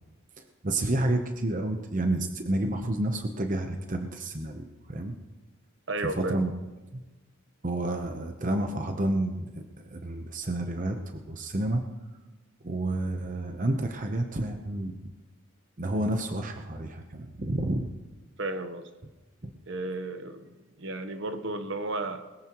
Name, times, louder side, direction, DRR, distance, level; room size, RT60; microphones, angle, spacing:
voice 1, 0.4-5.1 6.1-6.5 6.9-7.0 7.6-9.5 9.8-11.0 11.3-11.8 12.6-15.0 15.8-17.9 19.4-19.5, right 1 dB, 40° right, 5 dB, 0.9 m, -30 dB
voice 2, 5.9-6.4 18.4-18.9 19.7-20.5 20.8-22.2, right 2 dB, 60° right, 8 dB, 1.1 m, -33 dB
21.0 x 14.5 x 3.1 m, 1.2 s
head